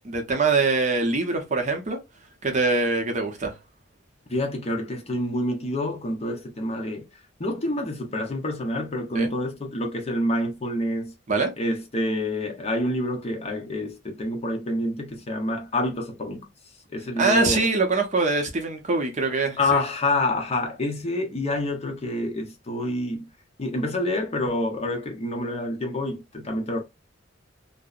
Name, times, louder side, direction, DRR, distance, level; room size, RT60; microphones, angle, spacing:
voice 1, 0.0-2.0 2.4-3.5 9.1-9.3 11.3-11.6 17.2-19.8, right 3 dB, 40° right, 0.6 m, -23 dB
voice 2, 4.3-7.1 7.4-11.1 11.6-16.5 16.9-17.6 19.6-23.3 23.6-26.8, left 1 dB, 35° left, 0.6 m, -27 dB
2.6 x 2.0 x 2.3 m
head